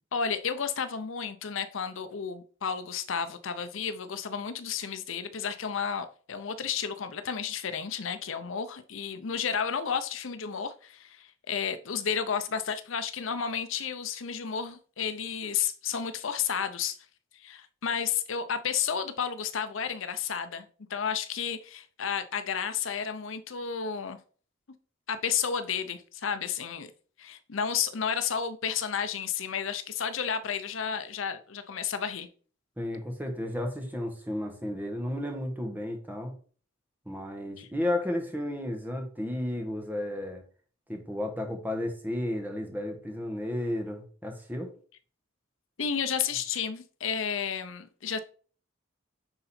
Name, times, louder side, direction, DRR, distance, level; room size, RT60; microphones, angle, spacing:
voice 1, 0.1-17.0 17.3-20.6 20.9-24.2 25.1-26.9 27.2-32.3 37.6-37.7 45.8-48.2, left 7 dB, 70° left, 0.6 m, -32 dB
voice 2, 32.8-36.3 37.0-40.4 40.9-44.7, left 1 dB, 10° right, 1.3 m, -33 dB
9.7 x 3.9 x 4.3 m
head